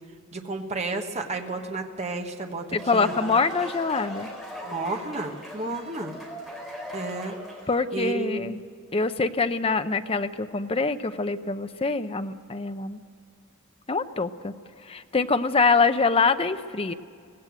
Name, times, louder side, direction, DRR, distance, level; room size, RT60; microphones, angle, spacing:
voice 1, 0.3-3.4 4.6-6.1 6.9-7.3 7.9-8.6, right 3 dB, 30° right, 4 dB, 1.3 m, -32 dB
sound 1, 2.5-7.8, equal, ahead, 3.9 m, -39 dB
voice 2, 2.7-4.3 7.7-8.6 8.9-13.0 13.9-14.5 14.8-16.9, left 4 dB, 25° left, 10 dB, 0.6 m, -24 dB
17.0 x 16.5 x 9.3 m, 2.3 s
head